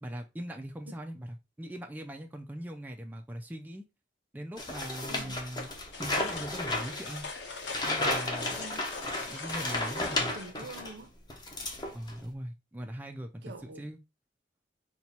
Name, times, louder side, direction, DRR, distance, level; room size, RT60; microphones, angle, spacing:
voice 1, 0.0-3.9 4.3-5.7 6.0-7.3 7.8-8.6 9.3-10.3 11.9-13.4 13.8-14.0, right 1 dB, 10° right, 0.3 m, -41 dB
sound 1, 4.6-11.0 11.3-12.2, left 2 dB, 25° left, 0.8 m, -33 dB
voice 2, 5.1-5.5 8.6-8.9 10.2-11.1 13.4-13.9, right 2 dB, 65° right, 0.6 m, -45 dB
sound 2, 5.6-10.5, left 4 dB, 80° left, 1.0 m, -41 dB
4.2 x 2.2 x 4.0 m
head